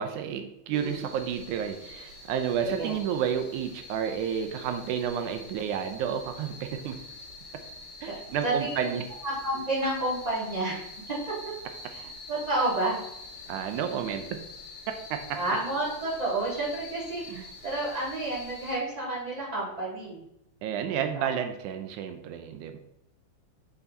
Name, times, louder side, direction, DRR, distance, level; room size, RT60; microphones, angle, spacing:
voice 1, 0.0-7.0 8.0-9.0 13.5-14.3 15.1-15.4 17.3-17.4 20.6-22.8, right 8 dB, 80° right, 6 dB, 2.0 m, -31 dB
sound 1, 0.7-18.8, left 2 dB, 50° left, 2.3 m, -45 dB
voice 2, 0.7-1.0 2.8-2.9 8.0-8.1 8.4-8.7 9.2-11.2 11.4-11.5 11.9-13.0 15.3-20.2 21.0-21.3, right 2 dB, 15° right, -7 dB, 2.6 m, -30 dB
5.8 x 5.5 x 4.0 m, 0.79 s
omnidirectional pair, 3.6 m